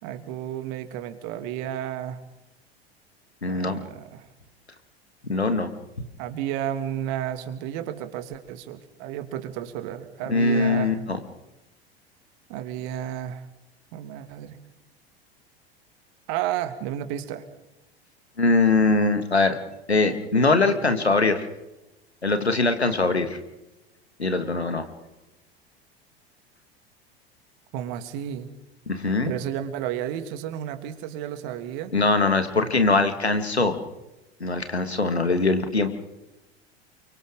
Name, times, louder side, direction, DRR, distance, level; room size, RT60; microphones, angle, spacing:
voice 1, 0.0-2.2 3.4-4.3 6.2-11.0 12.5-13.4 13.9-14.6 16.3-17.4 27.7-28.5 29.2-31.9, right 11 dB, 50° right, 8 dB, 2.6 m, -32 dB
voice 2, 3.4-3.8 5.3-5.7 10.3-11.2 18.4-19.6 19.9-21.5 22.2-23.4 24.2-24.8 28.9-29.3 31.9-33.8 34.4-35.9, left 3 dB, 90° left, 8 dB, 2.3 m, -22 dB
29.5 x 24.0 x 3.9 m, 0.99 s
figure-of-eight pair, 80°, 31 cm